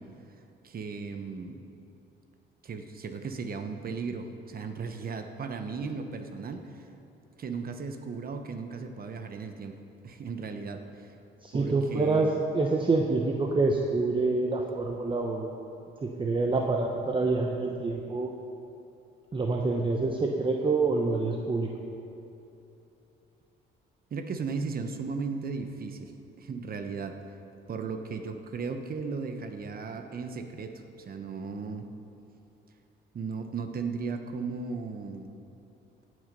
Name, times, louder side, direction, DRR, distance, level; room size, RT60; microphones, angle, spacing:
voice 1, 0.6-1.6 2.6-6.6 7.4-9.8 10.0-11.1 11.5-12.3 24.1-26.1 26.4-27.2 27.7-31.9 33.1-35.4, right 4 dB, 50° right, 7 dB, 1.1 m, -36 dB
voice 2, 11.4-15.5 16.0-18.3 19.3-21.7, right 3 dB, 25° right, 1 dB, 0.9 m, -27 dB
16.0 x 6.5 x 5.4 m, 2.8 s
cardioid pair, 90°, 20 cm